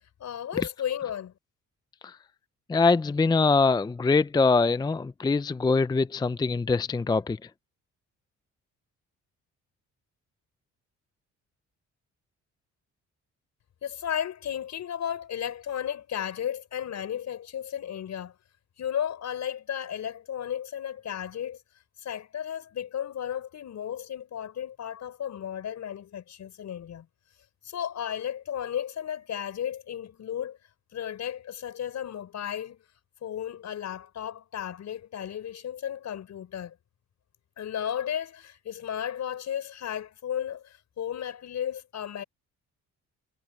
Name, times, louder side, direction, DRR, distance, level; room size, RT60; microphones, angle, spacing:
voice 1, 0.2-1.3 13.8-18.3 18.8-21.6 22.0-27.1 27.6-30.6 30.9-32.8 33.2-36.8 37.6-42.2, left 9 dB, 65° left, 5.2 m, -34 dB
voice 2, 2.7-7.4, left 4 dB, 15° left, 0.5 m, -23 dB
cardioid pair, 90°, 30 cm